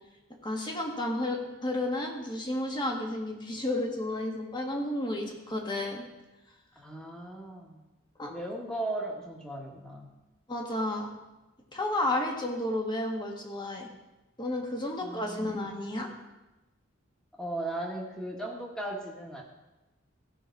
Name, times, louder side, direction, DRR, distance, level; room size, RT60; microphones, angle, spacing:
voice 1, 0.4-6.0 8.2-8.3 10.5-11.1 11.7-13.9 14.4-16.1, left 1 dB, 25° left, 1 dB, 1.6 m, -32 dB
voice 2, 6.7-7.8 8.3-10.1 15.0-15.6 17.4-19.4, right 1 dB, 5° left, -1 dB, 1.7 m, -37 dB
16.0 x 5.7 x 4.7 m, 1.0 s
head